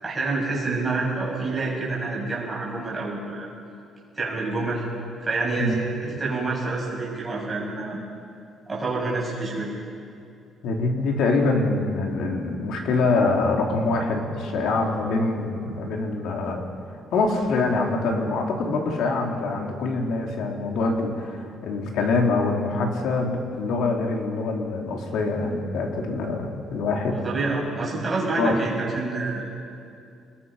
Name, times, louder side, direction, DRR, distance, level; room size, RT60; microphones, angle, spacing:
voice 1, 0.0-3.5 4.1-4.8 5.2-5.8 6.0-8.0 8.7-9.7 27.1-29.5, right 3 dB, 15° right, -5 dB, 7.1 m, -27 dB
voice 2, 10.6-16.6 17.1-27.2 28.3-28.6, left 3 dB, 75° left, 1 dB, 3.5 m, -24 dB
28.5 x 21.5 x 5.7 m, 2.4 s
cardioid pair, 165°, 0 cm